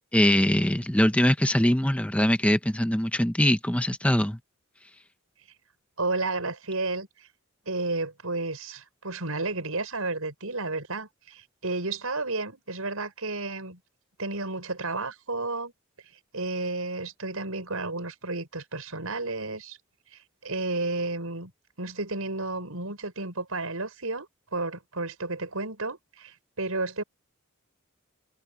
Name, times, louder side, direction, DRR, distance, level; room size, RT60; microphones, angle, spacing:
voice 1, 0.1-4.4, left 1 dB, 5° left, 0.8 m, -22 dB
voice 2, 6.0-7.3 7.7-13.8 14.2-15.7 16.3-19.8 20.1-21.5 21.8-27.0, right 3 dB, 85° right, 5.9 m, -32 dB
head